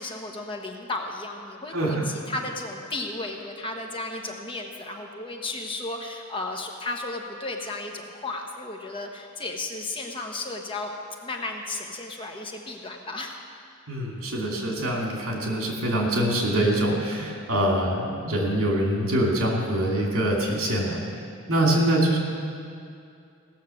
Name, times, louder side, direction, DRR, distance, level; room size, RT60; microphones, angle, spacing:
voice 1, 0.0-10.9 11.2-13.4, left 2 dB, 25° left, 2 dB, 1.0 m, -34 dB
voice 2, 1.7-2.1 13.9-21.0 21.5-22.2, right 1 dB, 80° right, -1 dB, 2.6 m, -24 dB
16.5 x 6.4 x 7.0 m, 2.4 s
head